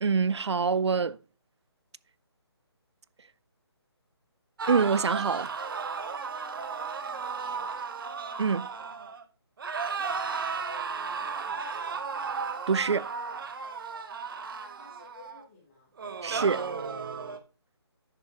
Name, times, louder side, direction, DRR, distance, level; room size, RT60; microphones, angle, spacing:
voice 1, 0.0-1.2 4.7-5.5 8.4-8.7 12.7-13.1 16.2-16.6, right 5 dB, 80° right, 0.5 m, -25 dB
sound 1, 4.6-9.2 9.6-15.4 16.0-17.4, right 5 dB, 55° right, 1.1 m, -34 dB
voice 2, 7.0-8.0 9.7-12.0 14.5-15.9, left 3 dB, 30° left, 3.2 m, -55 dB
11.0 x 6.7 x 3.0 m
figure-of-eight pair, 155°, 14 cm